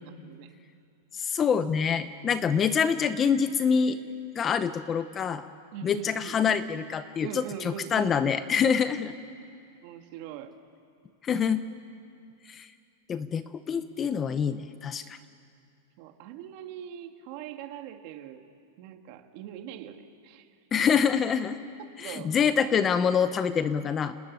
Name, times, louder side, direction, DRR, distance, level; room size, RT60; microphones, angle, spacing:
voice 1, 0.2-0.5 5.7-6.8 7.2-8.4 9.8-10.6 16.0-18.4 18.8-20.5 22.0-22.4, right 10 dB, 45° right, 6 dB, 2.0 m, -42 dB
voice 2, 1.1-4.0 4.3-5.4 5.8-9.1 11.2-11.6 12.5-12.7 13.1-15.2 20.7-21.6 22.0-24.2, left 7 dB, 20° left, 12 dB, 0.7 m, -26 dB
29.5 x 19.0 x 9.6 m, 2.5 s
supercardioid pair, 160°, 0 cm